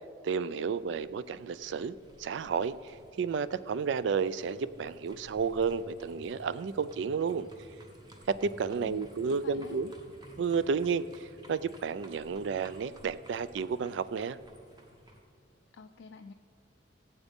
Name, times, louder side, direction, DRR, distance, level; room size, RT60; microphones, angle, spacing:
voice 1, 0.2-7.5 8.3-9.9 10.4-14.4, right 5 dB, 75° right, 16 dB, 0.3 m, -32 dB
sound 1, 0.7-15.2, equal, 20° right, 1.1 m, -54 dB
voice 2, 8.8-9.8 15.7-16.3, left 4 dB, 75° left, 5 dB, 0.4 m, -49 dB
16.5 x 8.1 x 3.6 m, 2.4 s
head